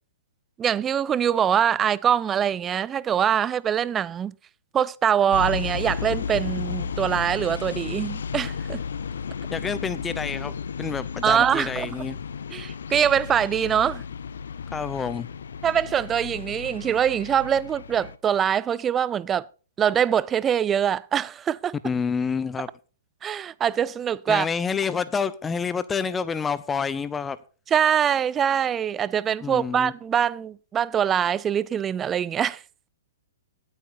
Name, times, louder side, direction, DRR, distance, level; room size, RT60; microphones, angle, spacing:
voice 1, 0.6-4.3 4.7-8.8 11.2-12.0 12.5-14.0 15.6-19.5 19.8-21.7 23.2-24.5 27.7-32.6, right 9 dB, 20° right, 0.5 m, -23 dB
sound 1, 5.3-18.2, left 6 dB, 60° left, 0.7 m, -33 dB
voice 2, 9.5-12.2 14.7-15.3 21.8-22.7 24.3-27.4 29.4-29.9, left 6 dB, 15° left, 0.7 m, -28 dB
18.5 x 9.1 x 2.7 m
figure-of-eight pair, 115°, 0 cm